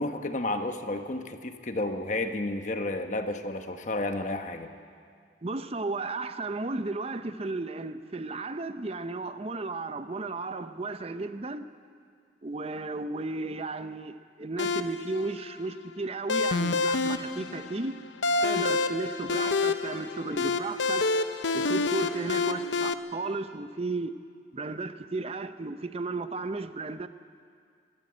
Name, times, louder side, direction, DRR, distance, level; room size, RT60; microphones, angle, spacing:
voice 1, 0.0-4.7, left 2 dB, 40° left, 1.1 m, -31 dB
voice 2, 5.4-11.7 12.4-18.0 18.4-21.1 21.5-24.1 24.5-27.1, right 3 dB, 35° right, 0.7 m, -34 dB
sound 1, 14.6-22.9, left 3 dB, 80° left, 0.8 m, -28 dB
23.0 x 13.5 x 8.6 m
head